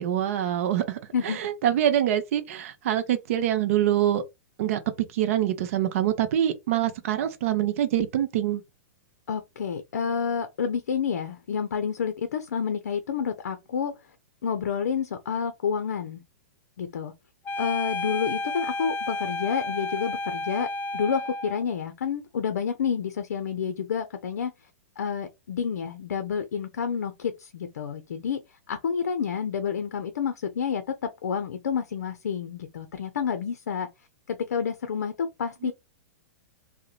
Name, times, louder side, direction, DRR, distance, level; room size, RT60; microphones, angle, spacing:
voice 1, 0.0-4.2 4.6-4.8 5.1-8.6 35.7-35.8, right 11 dB, 60° right, 0.6 m, -25 dB
voice 2, 1.1-1.5 9.3-14.0 14.4-16.2 16.8-17.1 17.6-24.5 25.0-28.4 28.7-33.9 34.3-35.7, left 7 dB, 75° left, 0.5 m, -29 dB
sound 1, 17.4-21.6, left 2 dB, 20° left, 0.4 m, -31 dB
2.8 x 2.1 x 2.4 m
hypercardioid pair, 115°, 9 cm